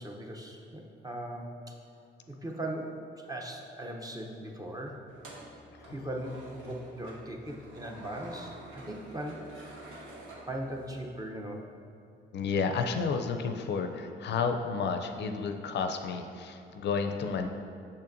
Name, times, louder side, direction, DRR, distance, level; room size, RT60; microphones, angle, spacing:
voice 1, 0.0-1.7 2.3-3.0 3.3-5.0 5.9-9.5 10.5-11.7, right 1 dB, 20° right, 1 dB, 0.7 m, -39 dB
sound 1, 5.1-11.1, right 1 dB, 90° right, 1.0 m, -49 dB
voice 2, 12.3-17.5, left 5 dB, 60° left, 6 dB, 0.4 m, -31 dB
6.6 x 5.6 x 2.6 m, 2.6 s
cardioid pair, 90°, 20 cm